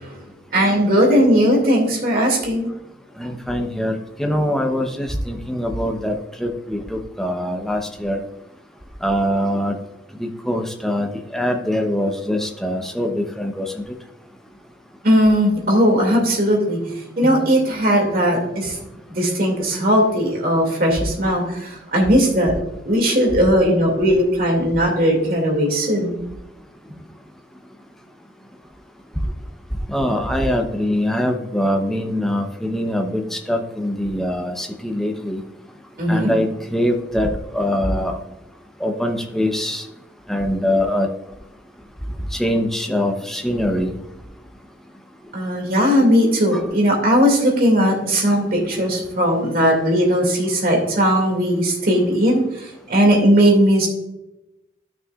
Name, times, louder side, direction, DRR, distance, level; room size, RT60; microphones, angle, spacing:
voice 1, 0.5-2.7 15.0-16.8 17.2-18.8 19.1-22.5 22.9-26.2 36.0-36.3 45.3-53.9, equal, 50° right, 0 dB, 2.3 m, -18 dB
voice 2, 3.2-6.1 6.4-8.2 9.0-9.7 10.2-13.7 29.9-35.4 36.1-37.3 37.5-38.1 38.8-39.8 40.3-41.1 42.4-43.9 46.5-46.6, equal, ahead, 3 dB, 0.8 m, -23 dB
12.5 x 6.2 x 2.4 m, 0.94 s
head